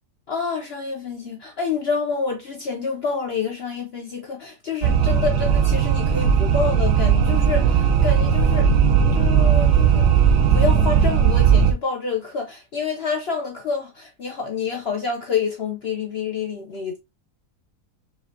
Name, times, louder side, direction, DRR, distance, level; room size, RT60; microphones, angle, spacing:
voice 1, 0.3-8.7 9.1-10.2 10.5-17.0, left 5 dB, 60° left, 0.7 m, -28 dB
sound 1, 4.8-11.7, right 7 dB, 65° right, 0.9 m, -17 dB
4.9 x 2.8 x 2.5 m
omnidirectional pair, 1.8 m